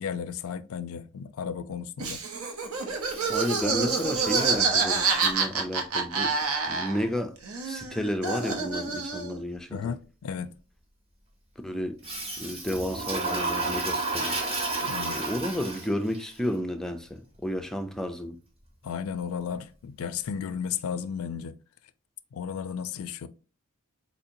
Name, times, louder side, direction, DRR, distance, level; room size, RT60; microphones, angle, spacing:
voice 1, 0.0-2.2 9.7-10.5 14.8-15.2 18.8-21.6 22.3-23.3, left 7 dB, 75° left, 0.4 m, -34 dB
Laughter, 2.0-7.2 7.4-9.4, right 4 dB, 80° right, 0.8 m, -27 dB
Toilet flush, 3.0-5.3 12.0-16.2, right 3 dB, 30° right, 0.9 m, -32 dB
voice 2, 3.3-6.3 6.7-7.3 7.6-10.0 11.6-12.0 12.4-14.4 15.2-18.4, equal, ahead, 0.4 m, -32 dB
4.2 x 2.8 x 2.5 m
head